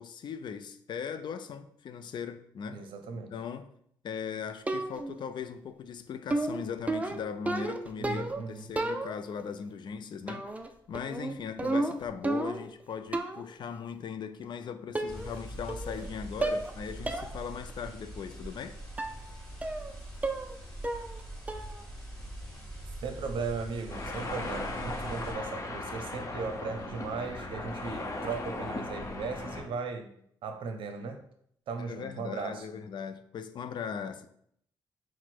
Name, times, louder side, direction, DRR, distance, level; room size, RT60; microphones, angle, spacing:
voice 1, 0.0-2.9 3.1-3.7 4.0-10.5 10.9-18.8 31.8-34.3, left 7 dB, 60° left, 0.4 m, -39 dB
voice 2, 2.7-3.3 8.0-8.7 23.0-30.1 30.4-31.2 31.7-32.7, right 4 dB, 75° right, 0.6 m, -37 dB
sound 1, 4.7-5.2 6.3-8.5 8.8-9.4 10.3-10.7 10.9-12.7 13.1-13.5 14.4-14.5 14.9-15.4 15.7-16.1 16.4-16.7 17.1-17.3 17.7-17.8 19.0-19.2 19.6-19.9 20.2-20.6 20.8-21.2 21.5-21.8, right 2 dB, 15° right, 0.4 m, -32 dB
sound 2, 15.1-25.3, right 1 dB, 10° left, 1.7 m, -43 dB
sound 3, 23.9-29.6, left 2 dB, 35° left, 0.8 m, -37 dB
4.2 x 2.1 x 4.5 m
cardioid pair, 65°, 9 cm